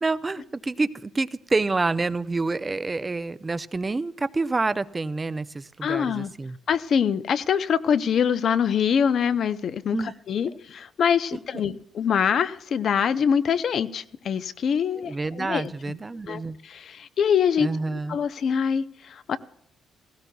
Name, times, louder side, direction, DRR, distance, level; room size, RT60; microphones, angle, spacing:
voice 1, 0.0-6.6 9.9-10.1 15.0-16.6 17.6-18.2, right 3 dB, 25° right, 15 dB, 0.5 m, -28 dB
voice 2, 5.8-6.3 6.7-15.9 16.2-19.4, left 7 dB, 60° left, 13 dB, 0.6 m, -24 dB
17.5 x 16.0 x 2.3 m, 0.75 s
cardioid pair, 90°, 0 cm